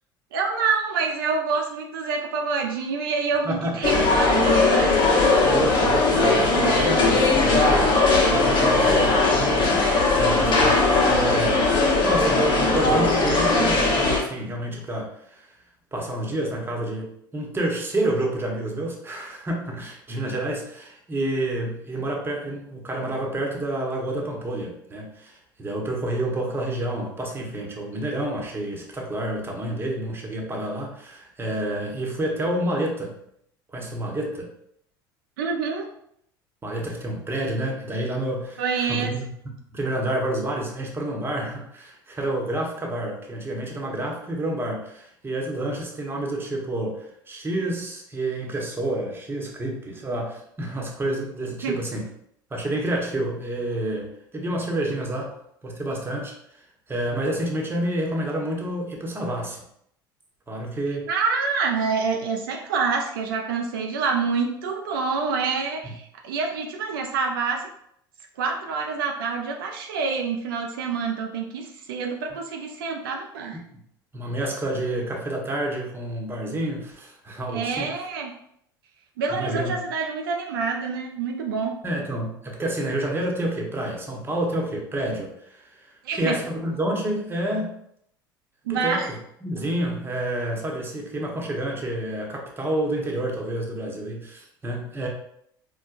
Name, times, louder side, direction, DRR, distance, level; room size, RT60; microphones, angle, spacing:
voice 1, 0.3-5.0 11.9-12.1 35.4-35.9 38.6-39.1 51.6-51.8 61.1-67.6 68.4-73.6 77.5-78.3 79.2-81.7 86.0-86.4 88.7-89.1, right 5 dB, 75° right, 2 dB, 0.4 m, -27 dB
voice 2, 3.4-3.9 5.4-8.0 8.3-15.5 15.9-33.2 33.7-34.5 36.6-52.1 52.5-55.3 55.6-56.6 56.9-59.6 60.5-61.1 65.8-65.9 74.1-78.0 79.3-79.8 81.8-87.8 88.7-95.1, right 1 dB, 20° right, -1 dB, 0.9 m, -29 dB
sound 1, 3.8-14.2, left 3 dB, 45° left, 1.0 m, -19 dB
4.4 x 2.2 x 2.5 m, 0.72 s
hypercardioid pair, 75°, 12 cm